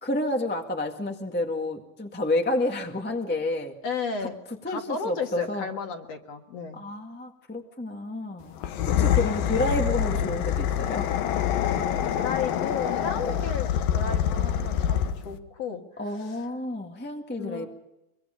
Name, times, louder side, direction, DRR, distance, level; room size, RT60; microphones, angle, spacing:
voice 1, 0.0-3.8 4.6-5.7 6.7-8.6 9.0-11.1 13.2-13.4 16.0-17.7, left 1 dB, 10° left, 3 dB, 0.7 m, -30 dB
voice 2, 3.8-4.4 4.7-6.8 12.1-15.8 16.2-16.4 17.4-17.7, left 5 dB, 55° left, 4 dB, 2.6 m, -33 dB
sound 1, 8.6-15.3, left 10 dB, 90° left, 2.9 m, -26 dB
24.0 x 23.5 x 5.2 m, 0.94 s
omnidirectional pair, 3.9 m